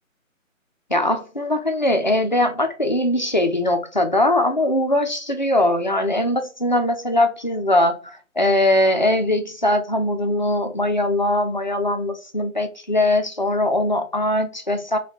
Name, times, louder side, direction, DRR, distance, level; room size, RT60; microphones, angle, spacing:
voice 1, 0.9-15.0, left 1 dB, 35° left, 0.4 m, -21 dB
3.5 x 2.2 x 4.1 m
figure-of-eight pair, 150°, 41 cm